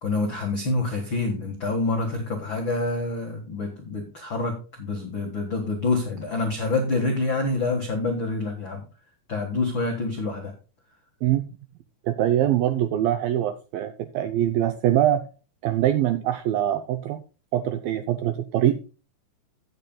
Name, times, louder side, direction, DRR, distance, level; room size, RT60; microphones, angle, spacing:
voice 1, 0.0-8.9 9.3-10.5, left 3 dB, 85° left, 2 dB, 1.1 m, -27 dB
voice 2, 12.1-15.3 15.6-17.2 17.5-18.8, right 12 dB, 85° right, 9 dB, 2.1 m, -23 dB
16.0 x 6.7 x 2.2 m, 0.34 s
omnidirectional pair, 4.8 m